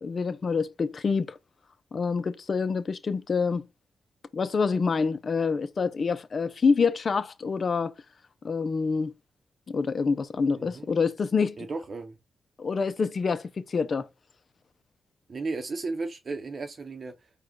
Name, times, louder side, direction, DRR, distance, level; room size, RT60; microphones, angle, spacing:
voice 1, 0.0-1.4 1.9-3.7 4.3-7.9 8.4-9.1 9.7-11.6 12.6-14.1, left 5 dB, 50° left, 0.6 m, -26 dB
voice 2, 10.5-10.9 11.6-12.2 15.3-17.3, right 3 dB, 50° right, 0.8 m, -34 dB
4.7 x 2.3 x 4.5 m
cardioid pair, 60°, 0 cm